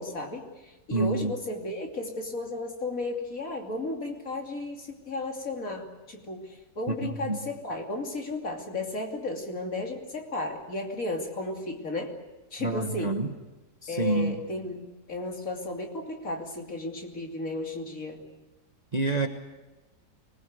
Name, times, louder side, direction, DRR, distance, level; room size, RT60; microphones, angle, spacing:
voice 1, 0.0-12.2 12.5-13.1 13.9-18.3, left 2 dB, 50° left, 2 dB, 3.2 m, -34 dB
voice 2, 0.9-1.3 6.9-7.4 12.6-13.3 13.8-14.4 18.9-19.3, right 2 dB, 25° right, 5 dB, 1.2 m, -27 dB
24.5 x 20.5 x 8.0 m, 1.1 s
omnidirectional pair, 1.9 m